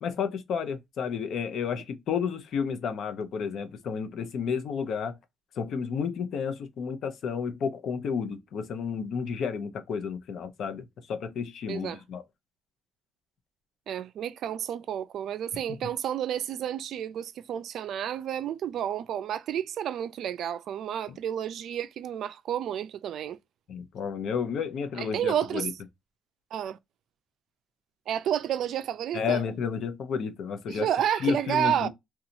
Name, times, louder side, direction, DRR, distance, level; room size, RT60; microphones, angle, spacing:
voice 1, 0.0-5.2 5.6-12.2 15.8-15.9 21.1-21.2 23.7-25.7 29.1-30.9 31.2-31.9, left 6 dB, 70° left, 0.6 m, -31 dB
voice 2, 13.9-23.4 25.0-25.7 26.5-26.8 28.1-29.4 30.7-31.9, right 10 dB, 75° right, 0.3 m, -30 dB
2.8 x 2.3 x 2.5 m
cardioid pair, 90°, 0 cm